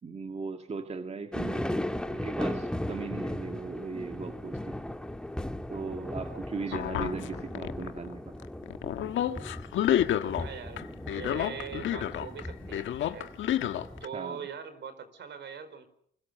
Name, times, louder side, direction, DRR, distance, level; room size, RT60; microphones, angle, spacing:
voice 1, 0.0-1.7 2.1-4.8 5.7-8.3 14.1-14.4, right 4 dB, 35° right, 5 dB, 1.9 m, -38 dB
sound 1, 1.3-14.1, left 1 dB, 5° left, 1.8 m, -37 dB
sound 2, 6.7-8.1 8.4-10.5 10.8-12.5 12.7-14.1, left 11 dB, 75° left, 1.4 m, -29 dB
voice 2, 10.3-10.8 11.1-13.3 14.0-15.9, right 7 dB, 65° right, 11 dB, 4.8 m, -42 dB
28.0 x 24.0 x 6.9 m, 0.69 s
cardioid pair, 90°, 20 cm